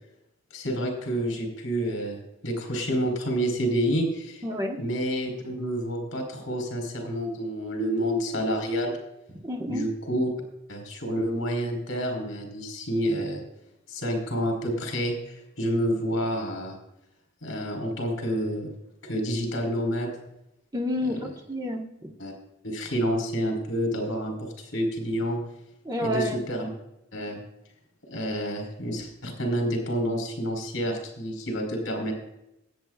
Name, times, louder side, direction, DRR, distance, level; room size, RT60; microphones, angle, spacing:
voice 1, 0.5-2.2 2.4-4.4 4.8-8.9 9.7-10.3 10.7-13.4 13.9-16.7 17.4-18.7 19.0-20.1 22.2-22.3 22.6-25.4 26.0-26.7 27.1-27.4 28.1-32.1, equal, 70° left, 3 dB, 3.8 m, -28 dB
voice 2, 4.4-4.8 9.4-9.8 20.7-21.8 25.8-26.4, left 1 dB, 20° right, 0 dB, 1.3 m, -29 dB
20.0 x 8.8 x 2.4 m, 0.83 s
head